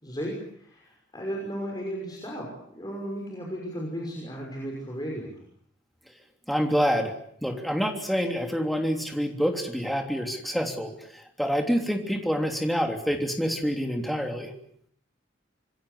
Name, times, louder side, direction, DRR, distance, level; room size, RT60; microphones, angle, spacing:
voice 1, 0.0-5.4, equal, 20° left, -1 dB, 6.0 m, -35 dB
voice 2, 6.5-7.1 7.4-14.5, equal, ahead, 3 dB, 3.2 m, -27 dB
26.5 x 22.5 x 8.4 m, 0.67 s
head